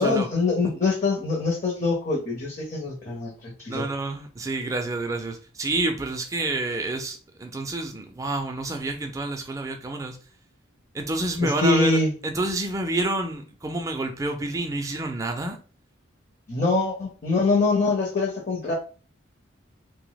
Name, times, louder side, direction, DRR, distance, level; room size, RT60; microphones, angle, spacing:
voice 1, 0.0-3.9 11.4-12.1 16.5-18.7, left 3 dB, 40° left, 0.6 m, -24 dB
voice 2, 3.7-10.2 10.9-15.6, right 2 dB, 15° right, 0.4 m, -28 dB
2.6 x 2.0 x 3.9 m
head